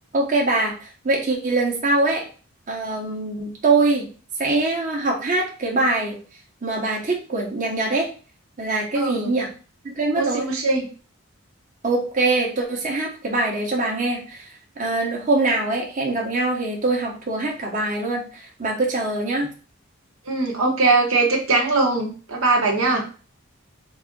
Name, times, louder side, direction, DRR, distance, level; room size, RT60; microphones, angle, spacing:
voice 1, 0.1-2.2 2.7-4.1 4.4-6.2 6.6-8.1 8.6-9.5 9.8-10.5 11.8-14.5 14.8-19.5, right 2 dB, 40° right, -2 dB, 1.0 m, -23 dB
voice 2, 8.9-9.3 10.2-10.9 20.2-23.1, right 3 dB, 75° right, 0 dB, 1.1 m, -21 dB
4.1 x 2.6 x 3.8 m, 0.36 s
head